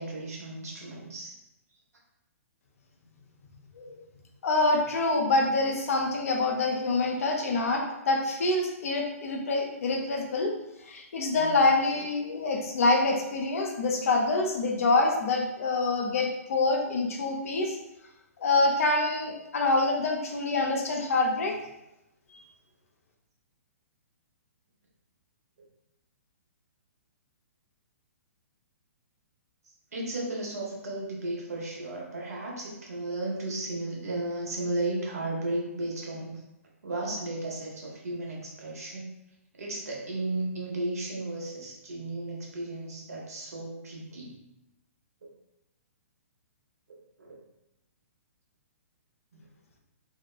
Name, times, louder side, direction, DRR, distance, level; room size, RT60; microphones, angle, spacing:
voice 1, 0.0-1.4 11.3-11.5 29.9-36.4 36.8-39.1 39.6-44.4 47.2-47.4, right 2 dB, 80° right, -3 dB, 0.9 m, -34 dB
voice 2, 4.4-10.5 10.9-17.7 18.4-21.5, left 2 dB, 65° left, 1 dB, 0.5 m, -26 dB
2.8 x 2.1 x 2.3 m, 0.91 s
hypercardioid pair, 125°, 8 cm